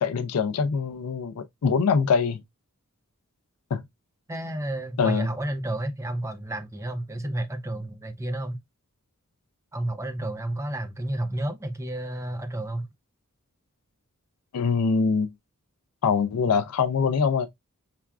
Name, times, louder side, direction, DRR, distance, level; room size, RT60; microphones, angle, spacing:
voice 1, 0.0-2.4 3.7-3.8 5.0-5.3 14.5-15.3 16.0-17.5, left 5 dB, 90° left, 0.4 m, -23 dB
voice 2, 4.3-8.6 9.7-12.9, right 1 dB, 15° right, 0.4 m, -31 dB
5.7 x 2.3 x 2.2 m
head